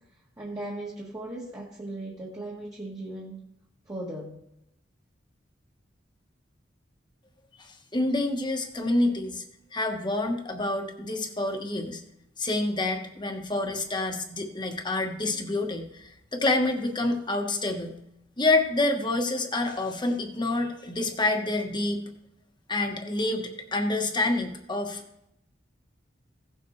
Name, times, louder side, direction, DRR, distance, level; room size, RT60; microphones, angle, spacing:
voice 1, 0.4-3.4 3.9-4.4, right 1 dB, 20° right, -4 dB, 1.5 m, -37 dB
voice 2, 7.9-9.4 9.7-12.0 12.4-18.0 18.4-22.0 22.7-25.0, left 2 dB, 25° left, 3 dB, 1.2 m, -27 dB
16.5 x 7.0 x 3.2 m, 0.81 s
head